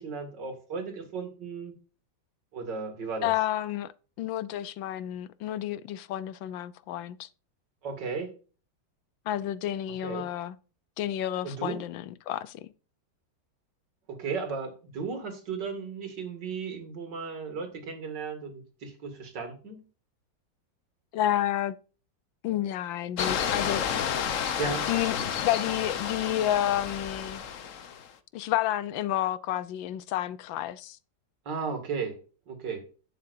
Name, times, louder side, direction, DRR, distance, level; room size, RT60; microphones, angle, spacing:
voice 1, 0.0-1.7 2.5-3.3 7.8-8.3 10.0-10.3 11.4-11.8 14.1-19.8 24.6-24.9 31.5-32.1 32.5-32.8, right 5 dB, 65° right, 2.9 m, -35 dB
voice 2, 3.2-3.9 4.2-7.3 9.3-10.6 11.0-12.7 21.1-21.7 22.4-23.8 24.9-27.4 28.3-31.0, left 12 dB, 90° left, 1.4 m, -30 dB
sound 1, 23.2-28.1, left 8 dB, 55° left, 1.0 m, -31 dB
11.0 x 8.8 x 2.6 m
omnidirectional pair, 2.0 m